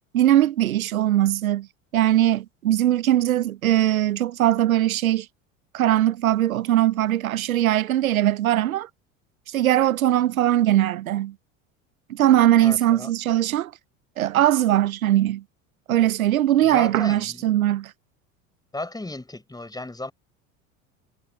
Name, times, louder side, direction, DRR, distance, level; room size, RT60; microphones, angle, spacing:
voice 1, 0.0-1.7 1.9-5.3 5.7-8.9 9.5-11.3 12.1-13.7 14.2-15.4 15.9-17.9, right 13 dB, 85° right, 0.7 m, -20 dB
voice 2, 12.6-13.1 16.6-17.5 18.7-20.1, left 2 dB, 10° left, 5.8 m, -35 dB
hypercardioid pair, 75°, 41 cm